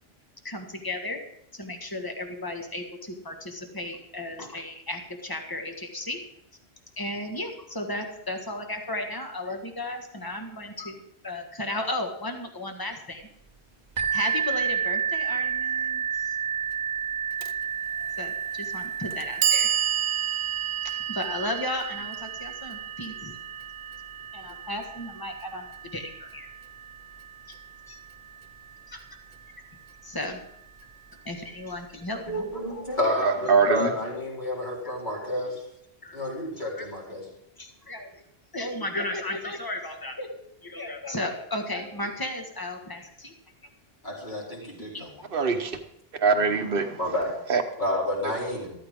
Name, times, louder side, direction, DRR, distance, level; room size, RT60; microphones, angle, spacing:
voice 1, 0.4-1.2 1.5-6.2 7.0-13.2 14.1-16.4 18.2-19.7 20.8-23.4 24.3-26.5 27.5-27.6 27.9-28.0 28.9-29.0 30.0-30.4 31.2-32.5 34.8-34.9 36.0-36.2 36.8-36.9 37.6-38.2 38.5-40.3 40.6-43.3 44.6-45.3, left 1 dB, 20° left, 4 dB, 1.7 m, -34 dB
sound 1, 14.0-29.5 30.3-30.4 30.9-31.0, right 7 dB, 40° right, 1.1 m, -32 dB
Clock, 17.4-17.5 18.5-18.6 19.1-25.2, right 10 dB, 80° right, 1.0 m, -30 dB
voice 2, 32.3-35.7 36.1-37.3 44.0-45.1 47.0-47.3 47.8-48.7, left 1 dB, 45° left, -5 dB, 4.3 m, -30 dB
voice 3, 33.2-33.9 45.3-45.8 46.2-47.0 47.5-47.6, right 4 dB, 60° right, 7 dB, 1.3 m, -23 dB
13.5 x 13.5 x 3.7 m, 0.78 s
omnidirectional pair, 1.1 m